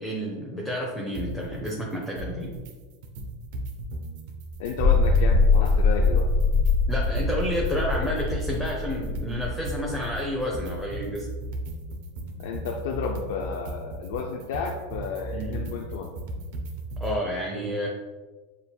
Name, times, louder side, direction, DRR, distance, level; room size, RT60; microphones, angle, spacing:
voice 1, 0.0-2.5 6.9-11.3 15.3-15.6 17.0-17.9, equal, ahead, -3 dB, 0.6 m, -30 dB
sound 1, 1.1-1.7 2.0-2.7 3.0-5.7 6.0-17.2, right 2 dB, 65° right, 0.6 m, -36 dB
voice 2, 4.6-6.3 12.4-16.1, left 5 dB, 70° left, 2 dB, 0.4 m, -32 dB
sound 2, 4.6-11.1, left 3 dB, 40° right, 0.9 m, -23 dB
7.1 x 2.6 x 2.2 m, 1.3 s
supercardioid pair, 130°, 0 cm